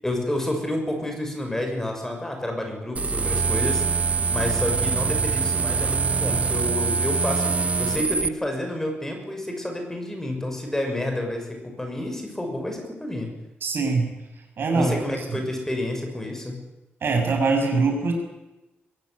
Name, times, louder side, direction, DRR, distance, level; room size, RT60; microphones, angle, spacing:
voice 1, 0.0-3.8 4.3-13.3 14.7-16.6, left 1 dB, 10° left, 3 dB, 6.3 m, -29 dB
sound 1, 3.0-8.3, right 5 dB, 35° right, 0.8 m, -24 dB
voice 2, 13.6-14.1 14.6-15.4 17.0-18.1, right 4 dB, 60° right, 4 dB, 6.6 m, -23 dB
23.0 x 16.0 x 9.7 m, 1.0 s
wide cardioid pair, 115°, 4 cm